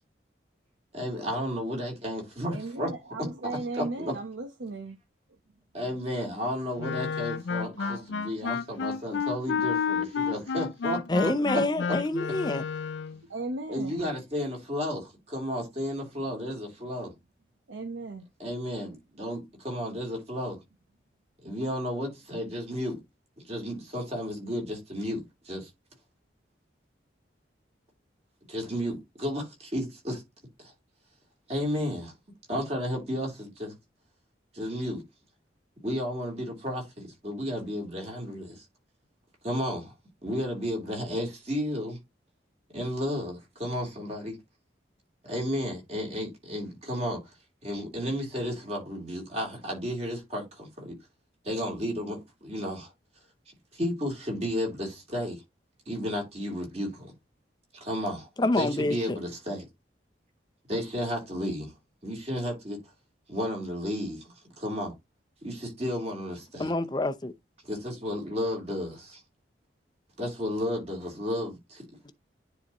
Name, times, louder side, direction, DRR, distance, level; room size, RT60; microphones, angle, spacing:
voice 1, 0.9-2.9 3.8-4.1 5.7-11.6 11.9-12.0 13.7-17.1 18.4-20.6 21.4-23.0 23.5-25.7 28.5-30.2 30.6-30.7 31.5-32.1 32.5-33.7 34.5-35.0 35.8-38.6 39.4-39.9 40.2-42.0 42.7-44.4 45.2-47.2 47.6-50.9 51.4-52.9 53.7-55.4 55.9-57.1 57.8-58.3 58.5-59.7 60.7-61.7 62.0-62.8 63.3-64.9 65.4-66.7 67.6-69.2 70.2-71.8, equal, 35° right, 3.2 m, -33 dB
voice 2, 2.5-5.0 7.8-8.1 13.3-14.0 17.7-18.3, right 3 dB, 90° right, 0.9 m, -36 dB
Wind instrument woodwind instrument, 6.8-13.2, left 6 dB, 80° left, 0.5 m, -30 dB
voice 3, 11.1-12.6 58.4-59.2 66.6-67.3 72.1-72.2, left 2 dB, 25° left, 0.6 m, -27 dB
9.8 x 4.1 x 3.0 m
head